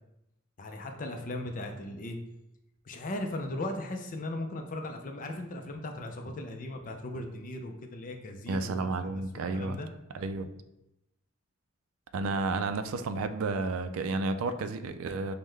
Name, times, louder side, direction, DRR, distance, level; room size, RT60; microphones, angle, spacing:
voice 1, 0.6-2.2 2.8-8.7 9.0-9.2 9.5-9.9, left 1 dB, 40° left, 4 dB, 0.5 m, -37 dB
voice 2, 8.5-9.8 10.1-10.5 12.1-15.3, right 3 dB, 90° right, 9 dB, 0.4 m, -31 dB
5.4 x 2.2 x 3.2 m, 0.87 s
head